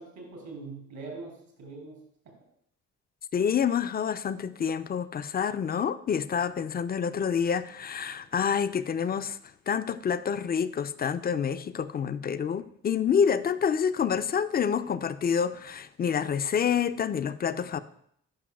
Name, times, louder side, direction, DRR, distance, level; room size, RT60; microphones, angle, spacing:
voice 1, 0.0-2.0 2.2-2.3, right 3 dB, 75° right, 0 dB, 2.6 m, -42 dB
voice 2, 3.3-9.4 9.7-17.8, left 7 dB, 30° left, 12 dB, 0.4 m, -28 dB
10.5 x 5.6 x 2.3 m, 0.68 s
hypercardioid pair, 40°, 35 cm